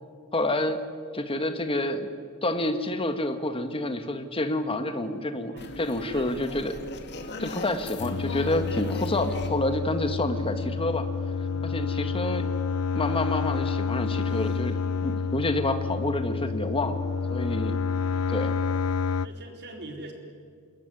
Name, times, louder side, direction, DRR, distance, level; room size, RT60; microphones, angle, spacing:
voice 1, 0.3-0.8 1.1-2.1 2.4-6.7 7.4-11.1 11.6-12.5 12.9-17.0 17.3-17.8 18.3-18.5, left 1 dB, 25° left, 8 dB, 1.7 m, -28 dB
sound 1, 5.6-10.7, left 3 dB, 50° left, 2.3 m, -39 dB
voice 2, 5.9-6.9 8.6-8.7 11.5-11.7 17.4-17.7 19.2-20.1, right 1 dB, 50° right, 2 dB, 4.3 m, -43 dB
sound 2, 8.0-19.3, left 5 dB, 75° left, 0.6 m, -29 dB
26.5 x 21.5 x 9.9 m, 2.1 s
head